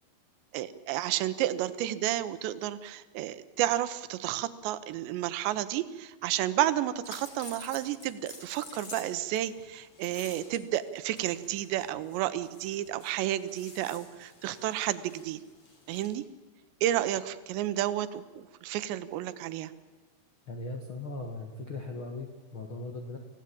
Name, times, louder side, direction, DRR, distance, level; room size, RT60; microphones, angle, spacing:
voice 1, 0.5-15.4 15.9-16.2 16.8-19.7, right 13 dB, 80° right, 13 dB, 3.0 m, -31 dB
sound 1, 7.0-16.2, left 3 dB, 35° left, 3.7 m, -50 dB
voice 2, 20.5-23.2, left 2 dB, 85° left, 2 dB, 1.1 m, -39 dB
25.5 x 16.0 x 8.5 m, 1.3 s
omnidirectional pair, 5.1 m